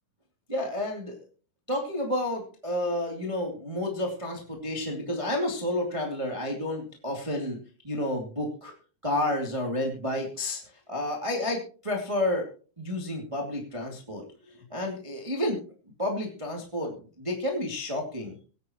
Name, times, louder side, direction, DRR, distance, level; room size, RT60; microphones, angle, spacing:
voice 1, 0.5-1.2 1.7-7.6 7.8-8.7 9.0-10.6 10.9-12.5 12.8-15.6 16.0-18.4, left 1 dB, 10° right, 0 dB, 1.6 m, -30 dB
24.0 x 9.3 x 3.1 m, 0.39 s
omnidirectional pair, 4.6 m